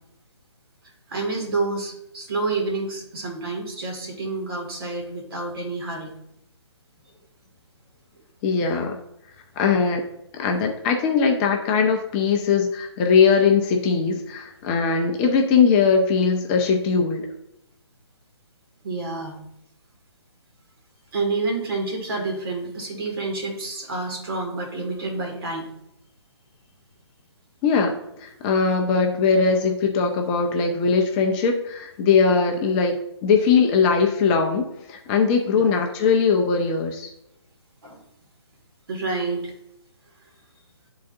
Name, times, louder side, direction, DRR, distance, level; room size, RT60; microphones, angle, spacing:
voice 1, 1.1-6.1 18.8-19.4 21.1-25.7 32.5-32.6 35.6-35.8 37.8-38.0 38.9-39.5, right 3 dB, 55° right, 2 dB, 2.1 m, -28 dB
voice 2, 8.4-9.0 9.6-10.1 10.3-17.3 27.6-37.1, left 5 dB, 15° left, 3 dB, 0.5 m, -20 dB
10.5 x 3.8 x 2.6 m, 0.81 s
hypercardioid pair, 150°, 15 cm